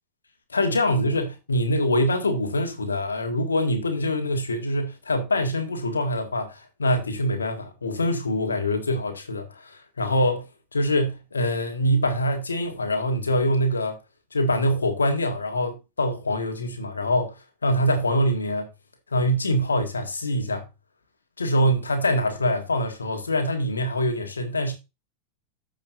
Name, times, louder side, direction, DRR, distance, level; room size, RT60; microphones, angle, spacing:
voice 1, 0.5-14.0 14.3-18.7 19.1-20.7 21.4-24.7, equal, 75° left, 1.7 m, -24 dB
14.5 x 5.1 x 2.6 m
figure-of-eight pair, 90°, 0 cm